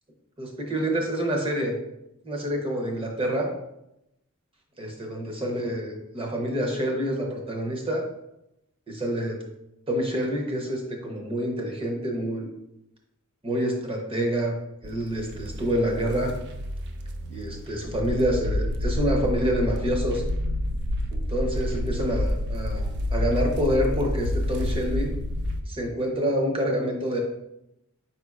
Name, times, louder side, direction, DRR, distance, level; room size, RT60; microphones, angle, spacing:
voice 1, 0.4-1.8 2.2-3.5 4.8-8.0 8.9-9.4 9.9-12.5 13.4-14.6 14.8-16.3 17.3-20.2 21.1-25.1 25.7-27.2, equal, 25° right, 1 dB, 0.8 m, -27 dB
sound 1, 14.8-25.6, left 1 dB, 55° right, 0.5 m, -29 dB
4.8 x 4.3 x 2.4 m, 0.86 s
head